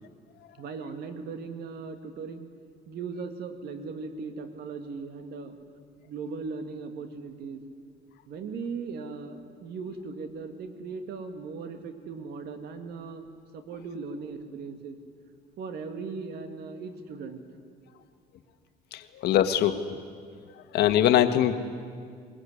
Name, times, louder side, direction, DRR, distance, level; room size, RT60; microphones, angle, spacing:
voice 1, 0.6-2.5 2.9-5.6 6.1-7.6 8.3-13.3 13.5-15.0 15.6-17.4, right 4 dB, 70° right, 7 dB, 2.3 m, -38 dB
voice 2, 18.9-19.8 20.7-21.5, left 11 dB, 75° left, 9 dB, 1.5 m, -22 dB
20.5 x 20.5 x 9.9 m, 2.1 s
cardioid pair, 110°, 17 cm